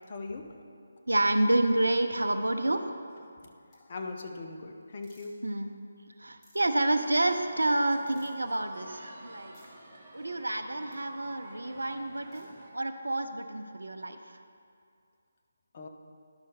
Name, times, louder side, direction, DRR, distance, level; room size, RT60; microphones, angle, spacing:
voice 1, 0.1-0.5 3.9-5.3 15.7-15.9, left 3 dB, 40° left, 3 dB, 0.8 m, -39 dB
voice 2, 1.1-2.9 5.4-5.8 6.2-9.6 10.1-12.5 12.7-14.4, right 1 dB, 80° right, 7 dB, 0.6 m, -28 dB
sound 1, 3.7-3.8 5.0-5.3 6.4-6.7 8.1-8.4 9.5-9.7 10.9-11.0 12.3-12.5, equal, 15° left, 1.6 m, -61 dB
sound 2, 7.0-12.7, right 2 dB, 30° right, 1.2 m, -50 dB
11.0 x 5.6 x 3.2 m, 2.4 s
figure-of-eight pair, 155°, 0 cm